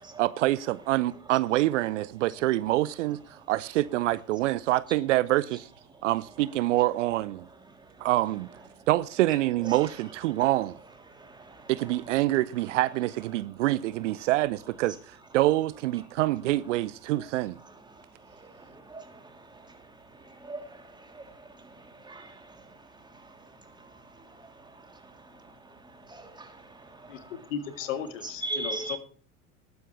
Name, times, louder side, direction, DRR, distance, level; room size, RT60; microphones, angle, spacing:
voice 1, 0.2-5.7 6.0-7.4 8.0-8.5 8.9-10.7 11.7-17.6, right 16 dB, 55° right, 0.7 m, -26 dB
voice 2, 11.2-11.7 18.4-19.2 19.5-19.6 20.4-21.4 22.0-22.5 26.1-27.3 28.4-29.0, right 2 dB, 10° right, 3.2 m, -39 dB
voice 3, 27.5-29.0, left 8 dB, 60° left, 2.0 m, -35 dB
20.0 x 9.3 x 3.3 m
figure-of-eight pair, 80°, 44 cm